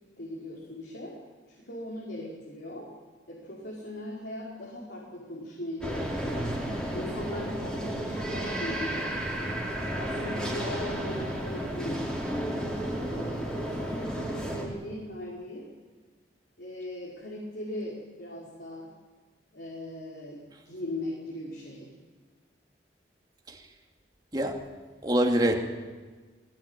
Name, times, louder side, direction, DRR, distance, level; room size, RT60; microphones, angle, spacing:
voice 1, 0.2-1.2 1.5-2.9 3.3-6.6 6.9-9.7 10.0-12.1 13.1-15.7 16.6-18.9 19.5-21.9, left 1 dB, 70° left, -4 dB, 5.4 m, -39 dB
sound 1, 5.8-14.7, right 1 dB, 5° left, 4.4 m, -32 dB
voice 2, 24.3-24.7 25.0-25.6, right 1 dB, 20° right, 2 dB, 2.5 m, -25 dB
21.0 x 18.5 x 9.1 m, 1.4 s
head